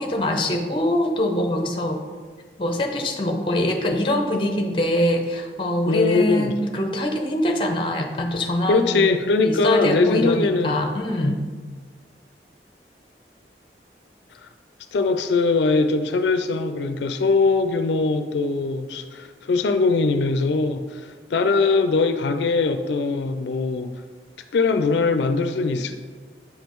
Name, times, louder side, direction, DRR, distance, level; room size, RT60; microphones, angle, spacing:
voice 1, 0.0-2.0 2.6-9.0 9.4-11.4, left 1 dB, 30° left, 4 dB, 0.6 m, -23 dB
voice 2, 5.9-6.5 8.7-10.7 14.9-23.9 24.5-26.0, left 3 dB, 80° left, 8 dB, 0.4 m, -21 dB
7.7 x 5.1 x 3.0 m, 1.5 s
head